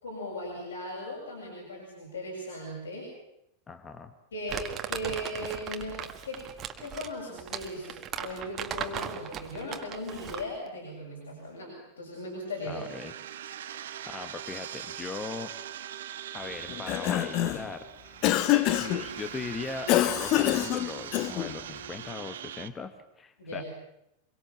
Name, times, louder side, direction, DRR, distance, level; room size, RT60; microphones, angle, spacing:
voice 1, 0.0-3.1 4.3-6.5 6.8-12.9 23.4-23.6, left 1 dB, 70° left, -2 dB, 7.3 m, -38 dB
voice 2, 3.7-4.1 12.7-13.1 14.1-15.5 16.3-18.2 18.7-23.6, left 4 dB, 20° left, 9 dB, 1.5 m, -39 dB
Crumpling crinkling, 4.5-10.6, right 8 dB, 30° right, 1.9 m, -38 dB
sound 1, 12.4-22.7, right 10 dB, 60° right, 1.2 m, -41 dB
Cough, 16.7-17.7 18.2-19.0 19.9-21.5, left 14 dB, 40° left, 1.1 m, -26 dB
25.5 x 23.0 x 7.4 m, 0.81 s
figure-of-eight pair, 90°, 0 cm